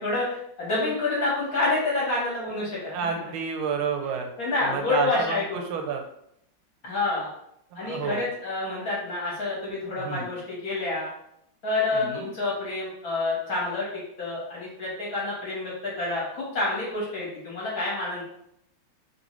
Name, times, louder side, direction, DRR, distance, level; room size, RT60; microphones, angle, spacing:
voice 1, 0.0-3.3 4.4-5.6 6.8-7.3 7.8-11.1 11.6-13.9 14.2-18.2, left 2 dB, 50° left, -5 dB, 1.3 m, -28 dB
voice 2, 2.8-4.3 4.6-6.0 7.7-8.2 10.0-10.3 11.9-12.3, right 6 dB, 90° right, 3 dB, 1.4 m, -30 dB
3.0 x 2.9 x 3.0 m, 0.74 s
omnidirectional pair, 2.3 m